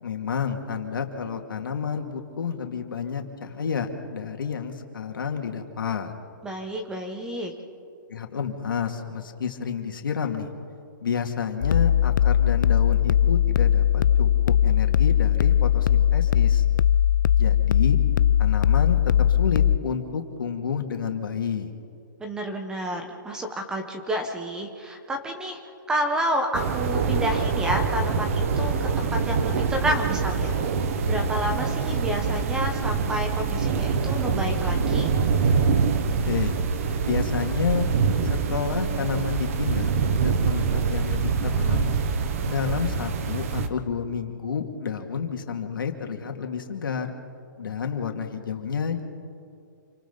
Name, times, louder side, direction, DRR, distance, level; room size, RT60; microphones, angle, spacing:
voice 1, 0.0-6.1 8.1-10.5 11.0-14.3 14.6-16.6 17.3-18.0 18.4-21.7 36.3-36.6 37.0-37.9 38.3-40.0 40.2-41.9 42.4-47.2 47.6-49.0, left 6 dB, 85° left, 4 dB, 2.5 m, -30 dB
voice 2, 6.4-7.5 22.2-25.6 25.9-30.7 31.1-35.1, equal, 5° right, 4 dB, 1.2 m, -30 dB
sound 1, 11.6-19.8, left 10 dB, 65° left, 0.4 m, -20 dB
sound 2, 26.5-43.7, right 5 dB, 40° right, 1.4 m, -25 dB
28.0 x 24.5 x 4.1 m, 2.4 s
hypercardioid pair, 165°, 11 cm